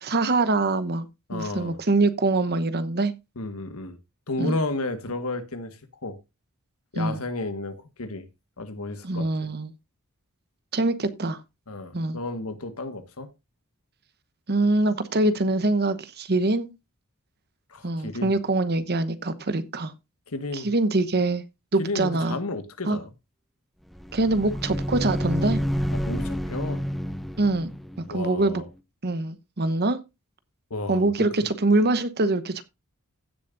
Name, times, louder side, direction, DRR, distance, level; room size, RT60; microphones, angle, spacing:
voice 1, 0.0-3.1 4.4-4.6 6.9-7.2 9.0-9.7 10.7-11.4 11.9-12.2 14.5-16.7 17.8-19.9 20.5-21.4 21.7-22.4 22.9-23.0 24.1-25.6 27.4-27.7 28.1-28.6 29.0-30.0 30.9-32.6, right 2 dB, 45° right, 1.0 m, -24 dB
voice 2, 1.3-1.8 3.3-4.0 4.3-6.2 6.9-8.3 8.6-9.5 11.7-13.3 17.7-18.3 20.3-20.7 21.8-23.1 25.9-26.8 28.1-28.6 30.7-31.3, left 2 dB, 70° left, 1.5 m, -32 dB
sound 1, 23.9-28.5, equal, ahead, 0.7 m, -29 dB
16.0 x 7.2 x 2.6 m
head